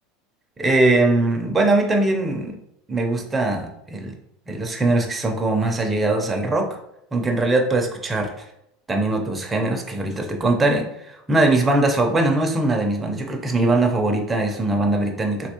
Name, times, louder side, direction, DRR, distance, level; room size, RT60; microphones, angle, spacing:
voice 1, 0.6-2.6 2.9-4.1 4.5-6.8 7.1-8.5 8.9-15.5, right 2 dB, 15° right, 1 dB, 0.5 m, -21 dB
3.4 x 2.9 x 2.8 m, 0.82 s
supercardioid pair, 115°, 0 cm